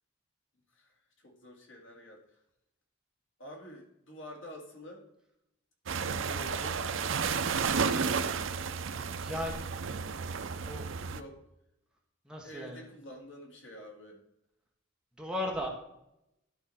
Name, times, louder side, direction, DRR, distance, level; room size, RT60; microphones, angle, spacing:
voice 1, 0.7-2.4 3.4-5.1 6.2-7.6 11.1-11.4 12.4-14.2, left 1 dB, 70° left, 1 dB, 2.2 m, -49 dB
sound 1, 5.9-11.2, right 5 dB, 70° right, 0.5 m, -32 dB
voice 2, 9.2-9.6 10.7-10.8 12.3-12.8 15.2-15.7, left 1 dB, 5° right, 0 dB, 1.1 m, -35 dB
11.5 x 5.0 x 4.2 m, 0.83 s
head